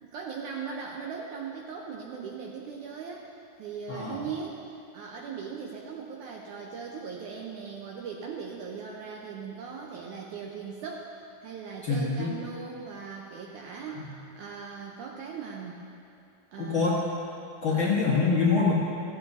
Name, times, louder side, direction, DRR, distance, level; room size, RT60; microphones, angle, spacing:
voice 1, 0.0-3.3 3.6-4.6 4.9-15.8 16.5-17.1 17.7-18.0, right 6 dB, 75° right, -1 dB, 1.9 m, -39 dB
voice 2, 11.8-12.3 16.6-17.0 17.6-18.7, left 4 dB, 55° left, -6 dB, 1.3 m, -24 dB
15.5 x 14.5 x 2.7 m, 2.6 s
omnidirectional pair, 4.2 m